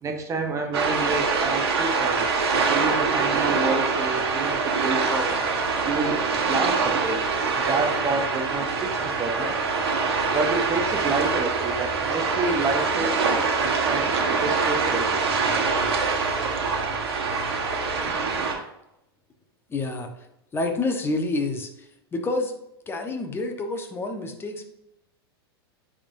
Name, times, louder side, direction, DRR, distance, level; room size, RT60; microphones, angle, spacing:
voice 1, 0.0-5.4 5.8-7.2 7.6-9.5 10.3-15.1, right 3 dB, 25° right, 4 dB, 0.8 m, -29 dB
sound 1, 0.7-18.5, right 4 dB, 75° right, 1.4 m, -24 dB
voice 2, 19.7-20.1 20.5-22.5 22.9-24.6, left 2 dB, 15° left, 5 dB, 1.0 m, -28 dB
9.7 x 3.7 x 2.6 m, 0.85 s
hypercardioid pair, 115°, 13 cm